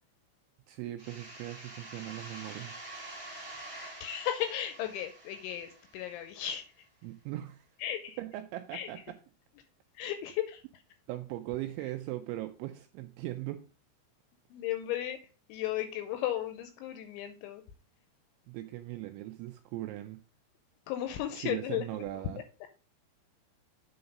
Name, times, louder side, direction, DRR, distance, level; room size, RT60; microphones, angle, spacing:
voice 1, 0.7-2.7 7.0-7.7 8.2-9.0 11.1-13.7 18.5-20.2 21.4-22.4, right 15 dB, 85° right, 7 dB, 2.7 m, -39 dB
sound 1, 1.0-6.5, right 2 dB, 25° right, 0.7 m, -47 dB
voice 2, 4.0-6.6 7.8-8.2 8.7-8.9 10.0-10.6 14.5-15.2 15.5-17.6 20.9-22.0, left 11 dB, 85° left, 8 dB, 2.7 m, -35 dB
7.9 x 3.9 x 5.3 m, 0.35 s
omnidirectional pair, 5.8 m